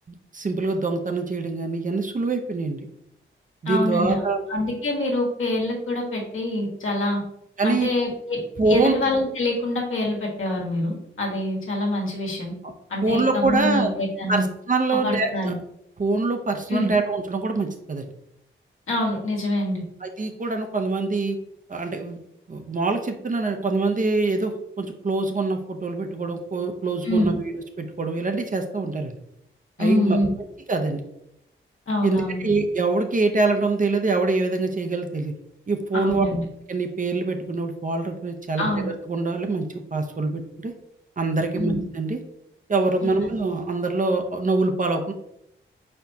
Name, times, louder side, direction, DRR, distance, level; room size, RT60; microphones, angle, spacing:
voice 1, 0.1-2.9 3.6-4.5 7.6-7.9 8.6-9.0 12.6-12.7 13.0-13.9 14.3-15.5 16.0-18.0 20.0-21.4 21.7-22.2 22.5-29.2 29.8-30.2 30.7-31.0 32.0-35.3 35.7-36.2 36.7-40.7 41.2-42.2 42.7-45.1, right 3 dB, 40° right, 4 dB, 0.7 m, -24 dB
voice 2, 3.6-7.2 7.6-12.5 12.9-14.5 14.9-15.5 16.7-16.9 18.9-19.8 27.0-27.3 29.8-30.3 31.9-32.4 35.9-36.4 38.6-38.9 41.6-41.8 43.0-43.3, left 1 dB, 75° left, -2 dB, 1.4 m, -25 dB
4.3 x 4.3 x 2.7 m, 0.79 s
cardioid pair, 55°, 21 cm